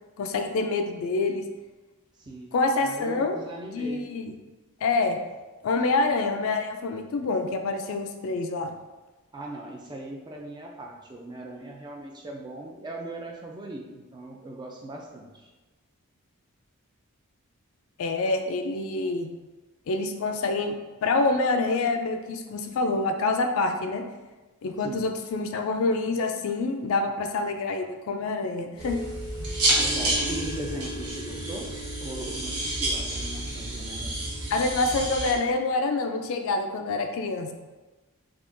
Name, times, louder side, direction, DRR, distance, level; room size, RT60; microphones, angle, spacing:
voice 1, 0.2-1.4 2.5-3.4 3.7-4.3 4.8-5.2 5.6-8.7 18.0-19.3 19.9-20.8 21.0-24.0 24.6-29.0 34.5-37.5, left 3 dB, 60° left, 5 dB, 0.3 m, -26 dB
voice 2, 2.2-2.5 2.8-4.1 9.3-15.5 24.8-25.1 29.8-31.7 32.0-34.1, right 1 dB, 20° right, 0 dB, 0.3 m, -39 dB
sound 1, 28.8-35.3, right 1 dB, 80° right, 1.0 m, -29 dB
3.6 x 2.4 x 2.5 m, 1.2 s
head